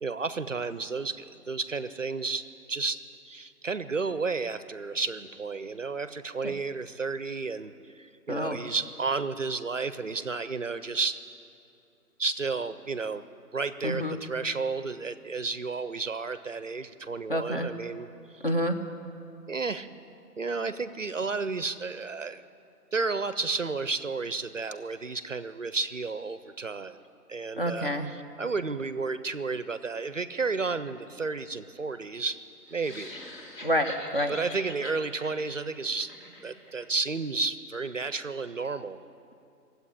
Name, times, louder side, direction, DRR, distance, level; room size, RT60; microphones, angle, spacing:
voice 1, 0.0-3.0 3.3-11.2 12.2-13.3 13.5-18.7 19.5-19.9 20.4-22.5 22.9-27.0 27.3-32.4 32.7-33.2 34.3-36.1 36.4-39.0, right 4 dB, 55° right, 13 dB, 0.5 m, -32 dB
voice 2, 8.3-8.6 13.8-14.2 17.3-17.7 18.4-18.8 27.6-28.1 33.6-34.4, equal, 35° left, 5 dB, 0.8 m, -28 dB
sound 1, 32.6-36.9, left 1 dB, 85° left, 3.8 m, -44 dB
18.0 x 8.1 x 9.8 m, 2.8 s
hypercardioid pair, 175°, 48 cm